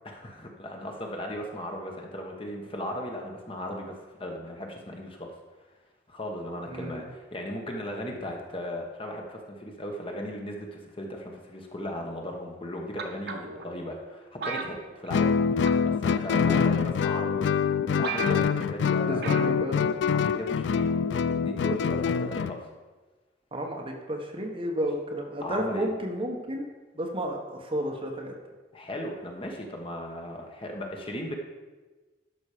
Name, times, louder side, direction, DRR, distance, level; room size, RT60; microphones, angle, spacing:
voice 1, 0.0-3.9 4.2-5.3 6.1-17.4 18.0-19.4 20.1-22.6 25.4-25.9 28.7-31.4, equal, 30° left, 1 dB, 1.3 m, -37 dB
voice 2, 6.7-7.1 16.3-16.8 19.1-19.8 23.5-26.7 27.0-28.3, equal, 30° right, 1 dB, 1.3 m, -32 dB
sound 1, 13.0-13.6 14.4-15.4 15.6-16.0 16.8-16.9 17.4-17.5 17.7-17.8 18.0-18.7 19.2-19.5 19.8-19.9, right 5 dB, 60° right, 1.0 m, -35 dB
Guitar, 15.1-22.6, left 6 dB, 70° left, 0.3 m, -25 dB
12.0 x 6.2 x 5.0 m, 1.2 s
head